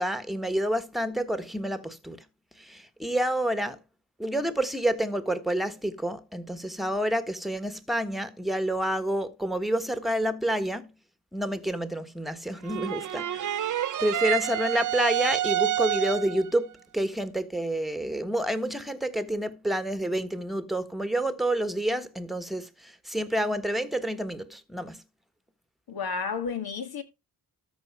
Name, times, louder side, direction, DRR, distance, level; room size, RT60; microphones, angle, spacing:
voice 1, 0.0-2.2 2.6-3.8 4.2-10.9 11.3-25.0, right 1 dB, ahead, 1.3 m, -29 dB
sound 1, 12.6-16.5, right 12 dB, 50° right, 0.6 m, -28 dB
voice 2, 25.9-27.0, left 5 dB, 70° left, 2.0 m, -31 dB
13.5 x 4.8 x 4.7 m
cardioid pair, 75°, 39 cm